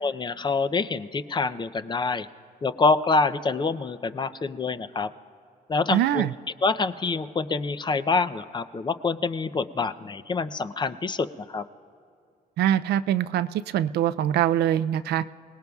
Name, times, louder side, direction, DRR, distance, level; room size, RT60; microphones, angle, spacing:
voice 1, 0.0-2.3 2.6-5.1 5.7-6.3 6.6-11.6, left 4 dB, 25° left, 11 dB, 0.5 m, -26 dB
voice 2, 5.9-6.3 12.6-15.2, right 11 dB, 85° right, 14 dB, 0.4 m, -23 dB
29.5 x 19.0 x 2.4 m, 2.4 s
cardioid pair, 110°, 17 cm